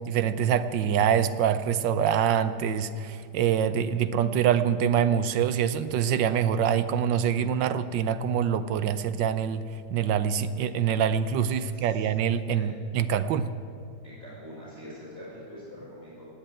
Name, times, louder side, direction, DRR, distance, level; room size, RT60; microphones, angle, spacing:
voice 1, 0.1-9.6 9.9-13.5, right 8 dB, 80° right, 12 dB, 1.4 m, -25 dB
voice 2, 11.7-12.1 12.5-12.7 14.0-16.3, equal, 10° right, -8 dB, 5.3 m, -44 dB
18.0 x 8.9 x 8.8 m, 2.3 s
omnidirectional pair, 2.0 m